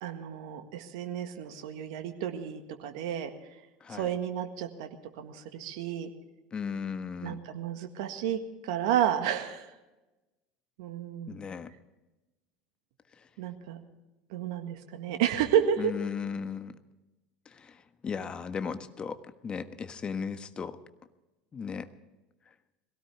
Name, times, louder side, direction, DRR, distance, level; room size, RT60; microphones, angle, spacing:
voice 1, 0.0-3.3 3.9-4.9 5.2-6.1 7.2-9.7 10.8-11.4 13.4-13.8 14.3-15.9, right 9 dB, 70° right, 6 dB, 1.7 m, -31 dB
voice 2, 3.8-4.1 6.5-7.4 11.3-11.7 13.2-13.3 15.8-16.8 17.4-20.8 21.5-21.9, left 6 dB, 30° left, 10 dB, 1.3 m, -36 dB
22.5 x 17.0 x 3.5 m, 1.1 s
hypercardioid pair, 75°, 3 cm